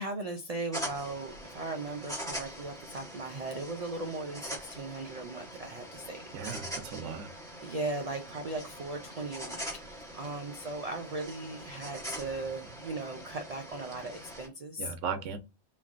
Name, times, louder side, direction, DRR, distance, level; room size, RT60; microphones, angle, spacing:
voice 1, 0.0-6.6 7.0-7.2 7.6-9.6 9.9-14.9, right 2 dB, 75° right, 0.3 m, -38 dB
sound 1, 0.7-14.5, equal, 5° left, 1.0 m, -43 dB
voice 2, 6.3-7.3 14.8-15.4, right 6 dB, 90° right, 0.9 m, -37 dB
3.1 x 2.5 x 2.3 m
omnidirectional pair, 1.2 m